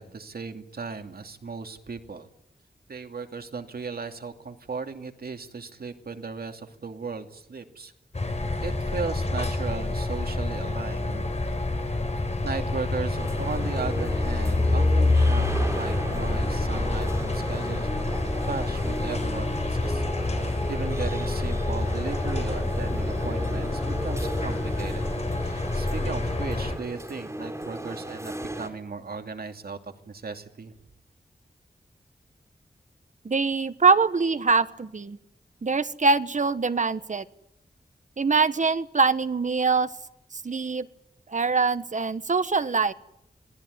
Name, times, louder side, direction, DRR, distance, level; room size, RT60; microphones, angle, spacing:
voice 1, 0.0-2.3 2.9-7.9 8.6-11.3 12.4-17.9 18.5-25.1 25.4-30.7, right 4 dB, 75° right, 6 dB, 2.7 m, -36 dB
sound 1, 8.1-26.8, left 2 dB, 45° left, 4.4 m, -27 dB
sound 2, 13.2-28.7, right 1 dB, 15° right, 4.6 m, -36 dB
voice 2, 33.2-35.2 35.6-37.2 38.2-39.9 40.3-40.9 41.3-42.9, right 4 dB, 50° right, 12 dB, 1.4 m, -23 dB
26.5 x 19.0 x 9.7 m, 0.77 s
wide cardioid pair, 90°, 16 cm